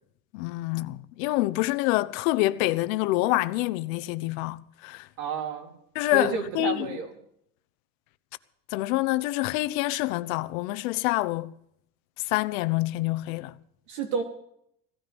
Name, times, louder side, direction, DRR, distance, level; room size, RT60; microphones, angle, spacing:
voice 1, 0.3-5.1 5.9-7.0 8.7-11.5 12.3-13.5, left 19 dB, 80° left, 0.9 m, -27 dB
voice 2, 5.2-5.7 6.1-7.1 13.9-14.2, right 6 dB, 85° right, 3.9 m, -30 dB
17.0 x 13.0 x 5.3 m
cardioid pair, 155°, 40 cm